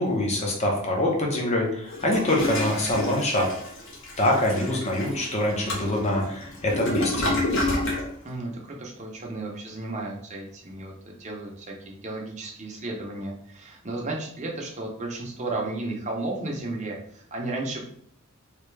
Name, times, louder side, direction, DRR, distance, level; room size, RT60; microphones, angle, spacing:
voice 1, 0.0-3.5 4.2-7.3, left 1 dB, 30° left, -1 dB, 0.8 m, -25 dB
Toilet flush, 1.9-8.1, left 1 dB, 55° left, 1.0 m, -29 dB
voice 2, 8.2-17.8, right 2 dB, 30° right, -1 dB, 0.7 m, -33 dB
3.3 x 2.8 x 3.3 m, 0.66 s
head